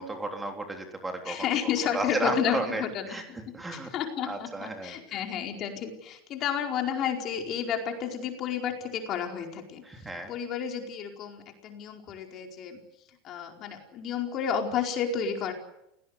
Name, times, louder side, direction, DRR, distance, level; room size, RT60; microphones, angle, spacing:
voice 1, 0.0-1.4 1.9-3.9 4.3-5.2 9.8-10.3, right 2 dB, 10° right, 4 dB, 3.5 m, -34 dB
voice 2, 1.2-3.1 3.7-9.8 10.3-12.8 13.2-15.5, left 8 dB, 40° left, 3 dB, 4.8 m, -31 dB
28.5 x 18.0 x 8.2 m, 0.82 s
supercardioid pair, 140°, 0 cm